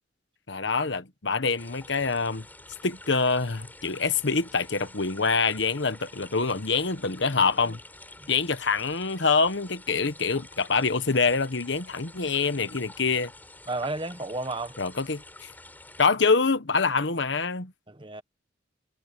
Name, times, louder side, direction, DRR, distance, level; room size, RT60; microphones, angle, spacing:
voice 1, 0.5-2.4 2.8-7.8 8.3-13.3 14.8-15.5 16.0-17.7, left 4 dB, 65° left, 1.3 m, -25 dB
sound 1, 1.6-16.1, left 2 dB, 10° left, 6.1 m, -48 dB
voice 2, 13.7-14.7 17.9-18.2, right 2 dB, 25° right, 1.2 m, -32 dB
head